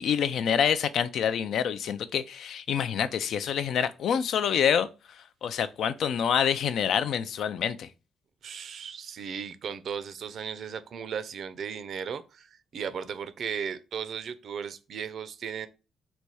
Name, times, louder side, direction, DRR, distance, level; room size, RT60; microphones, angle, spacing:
voice 1, 0.0-4.9 5.4-7.9, left 8 dB, 70° left, 0.4 m, -26 dB
voice 2, 8.4-15.7, right 7 dB, 60° right, 0.5 m, -36 dB
4.0 x 2.3 x 4.6 m
cardioid pair, 90°, 0 cm